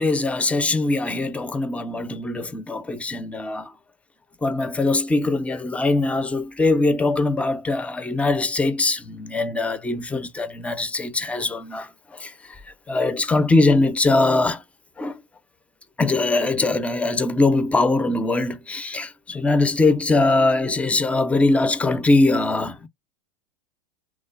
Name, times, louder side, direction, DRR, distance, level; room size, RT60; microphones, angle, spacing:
voice 1, 0.0-3.7 4.4-12.6 12.9-14.6 15.0-15.2 16.0-22.9, left 2 dB, 10° left, 0.4 m, -22 dB
3.2 x 2.1 x 2.3 m
hypercardioid pair, 100°, 17 cm